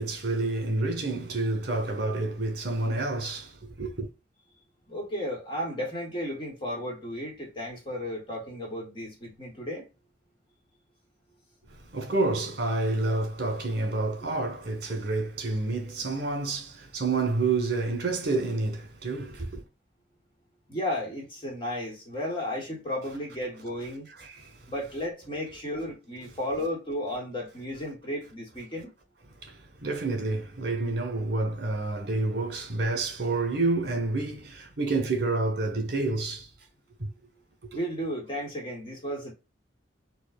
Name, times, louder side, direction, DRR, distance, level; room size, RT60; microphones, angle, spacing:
voice 1, 0.0-4.1 11.7-19.6 24.2-24.6 29.4-36.5 37.0-37.1, right 2 dB, 60° right, 1.4 m, -29 dB
voice 2, 4.9-9.9 20.7-24.1 24.7-28.9 37.7-39.3, equal, 25° left, 1.3 m, -34 dB
4.5 x 2.4 x 2.4 m
head